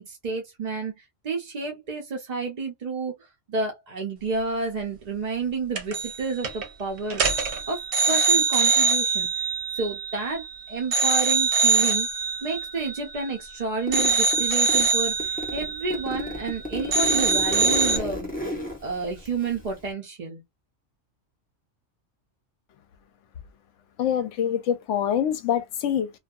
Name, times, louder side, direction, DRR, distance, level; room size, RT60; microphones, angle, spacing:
voice 1, 0.0-7.2 7.7-7.8 8.1-12.1 12.4-18.3 18.8-20.4, right 4 dB, 50° right, 0.5 m, -30 dB
sound 1, 5.8-6.2 6.4-6.7 7.1-10.5 10.9-13.5 13.9-16.6 16.9-18.0, right 4 dB, 65° right, 0.9 m, -23 dB
Zipper (clothing), 13.9-14.9 15.2-19.9, left 1 dB, 10° left, 0.8 m, -32 dB
voice 2, 24.0-26.1, left 9 dB, 75° left, 0.9 m, -25 dB
2.6 x 2.3 x 2.3 m
omnidirectional pair, 1.3 m